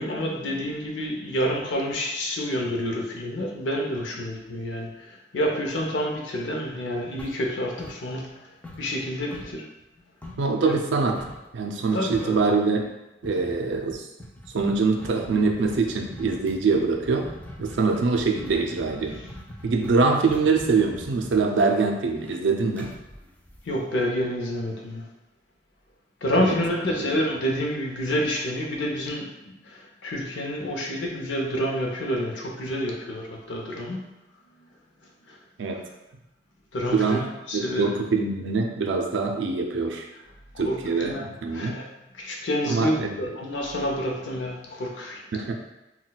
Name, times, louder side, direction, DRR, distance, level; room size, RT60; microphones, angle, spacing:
voice 1, 0.0-8.4 8.8-9.7 10.7-10.8 11.8-12.4 23.6-25.1 26.2-34.1 35.3-35.4 36.7-37.9 40.5-41.9 42.1-45.2, equal, 85° left, 0 dB, 0.6 m, -28 dB
sound 1, 7.2-8.4 8.6-10.5 11.2-11.5 11.8-11.9 12.1-12.5 13.2-24.0, left 1 dB, 10° left, 0.4 m, -42 dB
voice 2, 10.4-11.2 11.5-12.9 13.2-14.0 14.5-17.3 17.6-19.2 19.6-22.9 26.4-26.6 27.0-27.1 35.6-35.8 36.9-37.3 37.5-40.1 40.6-41.8 42.7-43.1 45.3-45.5, right 4 dB, 85° right, 3 dB, 0.4 m, -24 dB
3.9 x 2.2 x 2.2 m, 0.96 s
head